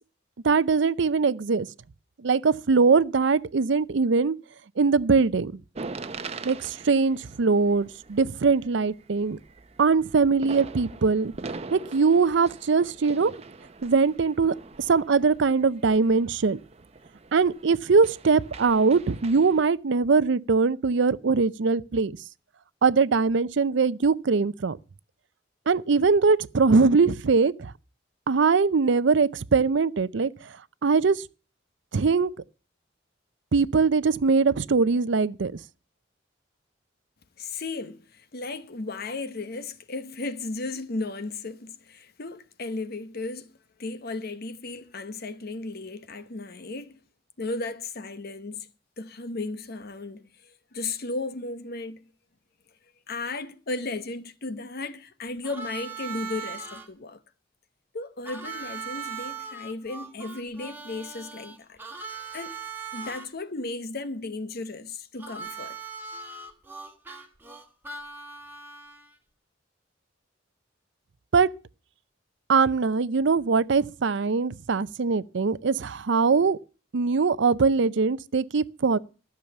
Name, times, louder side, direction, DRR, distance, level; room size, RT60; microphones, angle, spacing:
voice 1, 0.4-1.7 2.2-4.3 4.8-5.6 6.4-9.4 9.8-11.3 11.7-13.3 13.8-14.5 14.9-16.6 17.3-22.1 22.8-24.8 25.7-27.7 28.3-30.3 30.8-31.2 31.9-32.3 33.5-35.5 71.3-71.5 72.5-76.6 76.9-79.0, right 4 dB, 65° right, 0.5 m, -22 dB
sound 1, 5.7-19.6, right 3 dB, 35° right, 0.7 m, -43 dB
voice 2, 37.4-47.0 47.4-48.7 49.0-52.0 53.1-57.2 57.9-61.8 62.3-62.6 62.9-65.8, left 3 dB, 55° left, 0.9 m, -35 dB
Harmonica, 55.4-56.9 58.2-63.3 65.2-69.1, right 5 dB, 10° right, 1.5 m, -39 dB
13.5 x 6.9 x 6.8 m
head